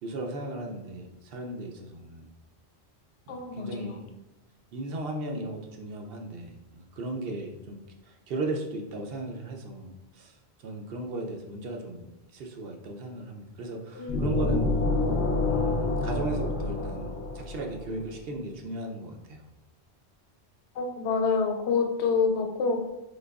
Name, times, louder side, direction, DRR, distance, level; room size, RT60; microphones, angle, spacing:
voice 1, 0.0-2.3 3.3-4.0 4.7-7.8 8.0-14.9 15.5-19.4, right 2 dB, 65° right, 2 dB, 0.7 m, -36 dB
voice 2, 3.3-4.0 13.9-14.2 14.5-14.6 20.7-22.9, left 5 dB, 90° left, 4 dB, 0.9 m, -27 dB
sound 1, 14.1-17.9, left 3 dB, 55° left, 0.6 m, -27 dB
3.9 x 2.9 x 2.3 m, 0.96 s
omnidirectional pair, 1.1 m